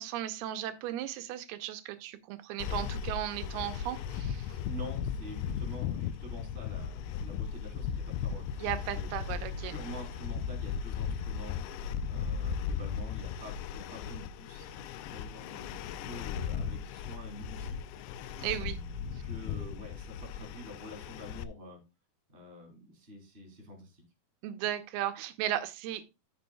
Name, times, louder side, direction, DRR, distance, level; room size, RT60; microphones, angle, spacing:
voice 1, 0.0-4.6 8.6-9.7 18.4-18.8 24.4-26.1, right 12 dB, 85° right, 2.6 m, -36 dB
sound 1, 2.6-21.4, left 7 dB, 85° left, 2.6 m, -37 dB
voice 2, 4.7-9.1 9.7-17.8 18.1-21.8 22.3-24.0, left 1 dB, 15° right, 2.4 m, -47 dB
13.5 x 6.9 x 2.2 m
omnidirectional pair, 4.6 m